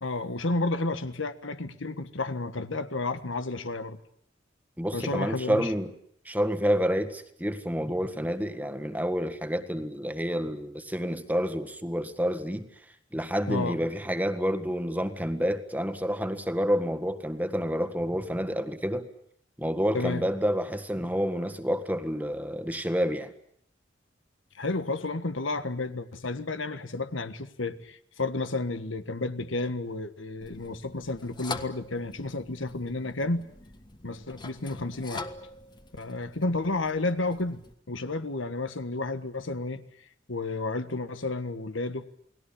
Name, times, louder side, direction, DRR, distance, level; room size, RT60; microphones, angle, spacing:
voice 1, 0.0-4.0 4.9-5.7 13.5-13.8 19.9-20.2 24.6-33.5 34.0-35.3 35.9-42.0, left 2 dB, 85° left, 1.6 m, -31 dB
voice 2, 4.8-5.9 6.2-12.7 13.1-19.1 19.6-23.3, equal, 10° right, 1.7 m, -29 dB
sound 1, 30.4-37.7, left 3 dB, 25° left, 1.4 m, -44 dB
29.5 x 19.5 x 8.7 m
head